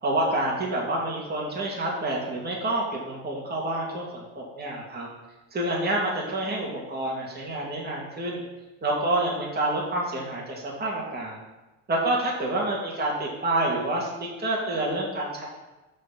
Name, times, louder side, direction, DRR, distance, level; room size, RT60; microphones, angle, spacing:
voice 1, 0.0-5.1 5.5-8.4 8.8-11.4 11.9-15.5, right 1 dB, 25° right, -4 dB, 2.5 m, -28 dB
12.5 x 4.4 x 4.1 m, 1.1 s
hypercardioid pair, 85°, 41 cm